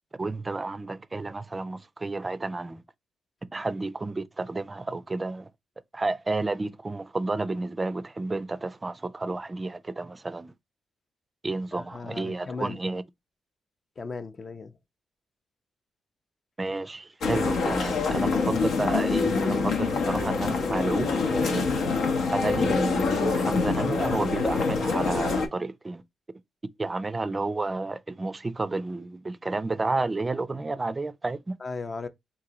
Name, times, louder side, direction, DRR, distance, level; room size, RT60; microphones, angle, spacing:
voice 1, 0.2-2.8 3.5-5.5 5.9-10.5 11.4-13.0 16.6-21.7 22.3-26.0 26.8-31.5, right 3 dB, 25° right, 0.4 m, -31 dB
voice 2, 11.7-12.8 14.0-14.7 18.1-18.5 31.6-32.1, left 4 dB, 40° left, 0.5 m, -37 dB
sound 1, 17.2-25.5, left 4 dB, 80° left, 0.8 m, -25 dB
3.8 x 2.6 x 2.9 m
cardioid pair, 80°, 0 cm